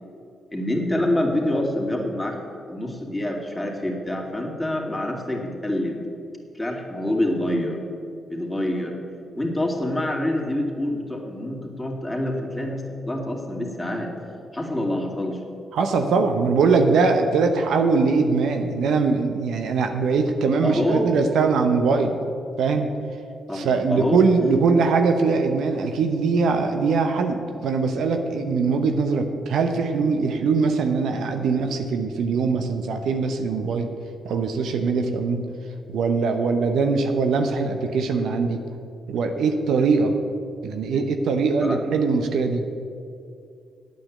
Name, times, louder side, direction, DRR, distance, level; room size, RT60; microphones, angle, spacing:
voice 1, 0.5-2.4 2.7-6.0 6.5-7.8 8.3-8.9 9.3-14.1 14.5-15.4 20.6-21.1 23.5-24.2 41.6-41.8, left 1 dB, 15° left, 0 dB, 2.7 m, -26 dB
voice 2, 15.7-22.2 22.6-22.9 23.5-33.9 34.2-35.4 35.9-38.6 39.1-40.2 40.6-42.6, right 4 dB, 70° right, 6 dB, 0.8 m, -22 dB
9.0 x 8.8 x 7.4 m, 2.5 s
hypercardioid pair, 45°, 0 cm